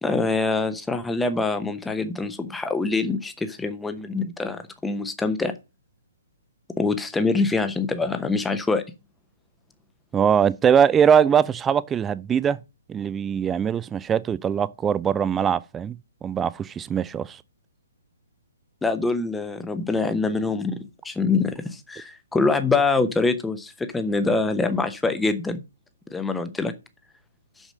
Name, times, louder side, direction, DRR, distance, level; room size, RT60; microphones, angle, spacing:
voice 1, 0.0-5.5 6.8-8.8 18.8-20.8 21.0-25.6 26.1-26.7, left 3 dB, 5° left, 0.9 m, -24 dB
voice 2, 10.1-12.6 12.9-17.4, right 8 dB, 15° right, 0.4 m, -21 dB
6.4 x 6.3 x 6.4 m
figure-of-eight pair, 125°, 0 cm